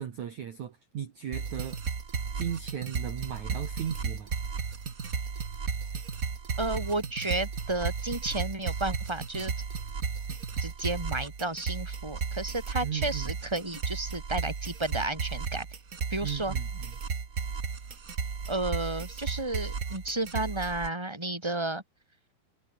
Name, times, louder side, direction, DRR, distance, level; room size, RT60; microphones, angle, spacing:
voice 1, 0.0-1.8 2.3-4.3 12.8-13.3 16.2-16.9, right 9 dB, 55° right, 2.9 m, -36 dB
sound 1, 1.3-20.9, right 5 dB, 80° right, 0.7 m, -34 dB
voice 2, 6.6-9.5 10.6-15.7 16.1-16.5 18.5-21.8, right 2 dB, 5° right, 4.9 m, -32 dB
omnidirectional pair, 4.8 m